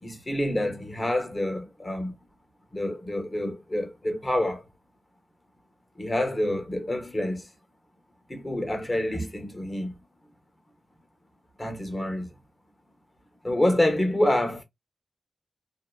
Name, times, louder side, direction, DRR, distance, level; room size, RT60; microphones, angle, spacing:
voice 1, 0.0-2.1 2.7-4.6 6.0-7.5 8.3-9.9 11.6-12.3 13.4-14.6, left 1 dB, 25° left, 1.0 m, -27 dB
2.7 x 2.1 x 2.2 m
cardioid pair, 50°, 0 cm